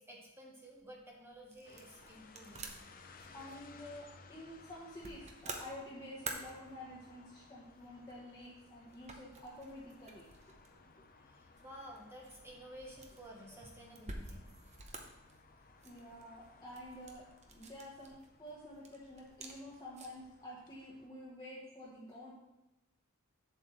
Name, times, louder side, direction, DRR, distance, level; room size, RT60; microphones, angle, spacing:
voice 1, 0.0-2.7 11.2-14.5, equal, 10° right, -2 dB, 1.1 m, -53 dB
sound 1, 0.8-20.3, right 3 dB, 30° right, 0.8 m, -52 dB
Street Barcelona Lluria consell de cent, 1.6-21.1, left 4 dB, 40° left, 0.6 m, -61 dB
voice 2, 3.3-10.2 15.8-22.3, left 1 dB, 20° left, -6 dB, 1.1 m, -50 dB
8.0 x 7.4 x 3.2 m, 0.97 s
head